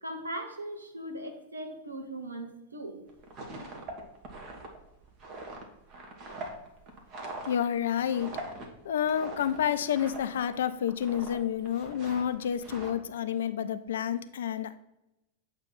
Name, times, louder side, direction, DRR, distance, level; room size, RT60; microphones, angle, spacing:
voice 1, 0.0-3.0, right 1 dB, 80° right, 5 dB, 1.0 m, -39 dB
sound 1, 3.1-10.6 10.8-11.4 11.7-12.9, right 2 dB, 35° right, 1.3 m, -42 dB
voice 2, 7.5-8.3 8.8-14.8, left 9 dB, 60° left, 12 dB, 0.4 m, -29 dB
7.9 x 2.9 x 5.6 m, 0.91 s
figure-of-eight pair, 90°, 0 cm